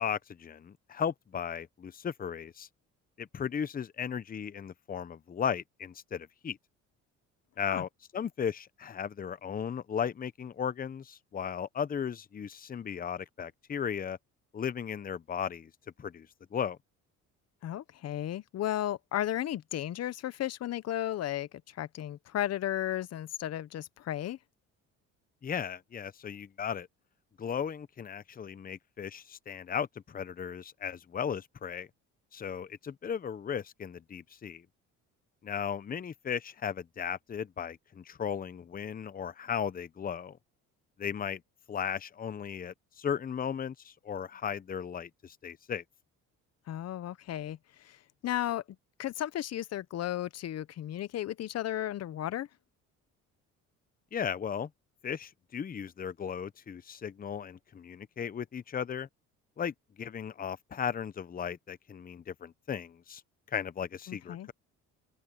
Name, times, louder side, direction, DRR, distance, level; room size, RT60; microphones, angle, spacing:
voice 1, 0.0-2.7 3.2-6.6 7.6-14.2 14.5-15.7 16.0-16.8 25.4-26.9 27.4-31.9 32.3-34.7 35.4-40.4 41.0-41.4 41.7-45.8 54.1-54.7 55.0-59.1 59.6-63.2 63.5-64.5, left 7 dB, 30° left, 0.8 m, -36 dB
voice 2, 17.6-24.4 46.7-48.0 48.2-48.6 49.0-52.5 64.1-64.5, left 12 dB, 55° left, 0.9 m, -34 dB
open air
cardioid pair, 90°, 31 cm